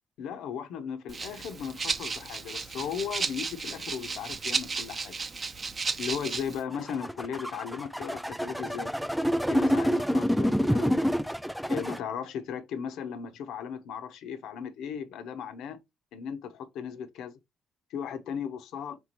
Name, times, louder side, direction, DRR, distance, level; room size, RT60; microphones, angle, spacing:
voice 1, 0.2-5.1 5.9-8.9 9.5-11.0 11.7-15.8 16.1-17.4 17.9-19.0, left 7 dB, 85° left, 0.7 m, -36 dB
Rattle (instrument), 1.1-6.6, right 4 dB, 35° right, 0.6 m, -34 dB
sound 1, 6.7-12.0, equal, ahead, 0.3 m, -27 dB
4.4 x 3.4 x 2.9 m
cardioid pair, 90°, 0 cm